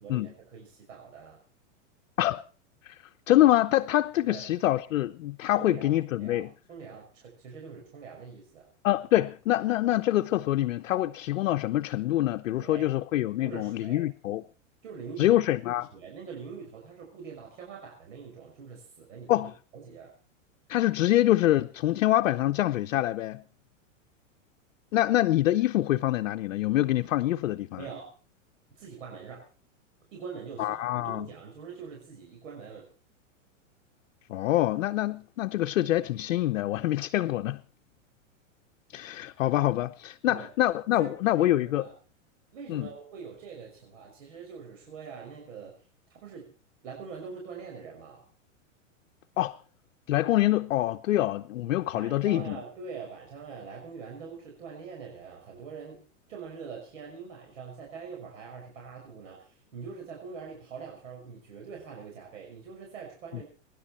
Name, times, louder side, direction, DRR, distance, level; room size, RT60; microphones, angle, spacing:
voice 1, 0.0-1.4 4.3-4.5 5.6-8.7 12.6-12.9 13.4-14.0 14.8-15.4 15.7-20.1 27.8-28.1 28.7-29.4 30.1-32.9 40.3-40.5 40.9-41.1 41.4-41.9 42.5-45.7 46.1-46.5 46.8-48.2 51.9-56.0 56.3-63.4, right 6 dB, 75° right, 5.8 m, -43 dB
voice 2, 3.3-6.5 8.8-14.4 15.2-15.9 19.3-19.5 20.7-23.4 24.9-27.8 30.6-31.3 34.3-37.6 38.9-41.9 42.7-42.9 49.4-49.6 50.1-52.6, left 14 dB, 75° left, 0.8 m, -25 dB
24.0 x 11.0 x 4.3 m
hypercardioid pair, 135°, 39 cm